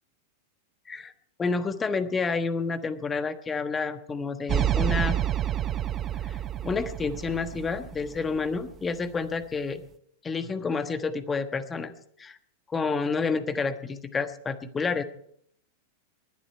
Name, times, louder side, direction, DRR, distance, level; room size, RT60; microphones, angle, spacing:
voice 1, 1.4-5.2 6.2-6.4 6.6-9.8 10.2-11.9 12.2-12.4 12.7-15.0, left 4 dB, 20° left, 10 dB, 1.2 m, -29 dB
sound 1, 4.5-8.8, right 11 dB, 30° right, 0.6 m, -29 dB
20.0 x 11.5 x 4.5 m, 0.70 s
figure-of-eight pair, 95°, 0 cm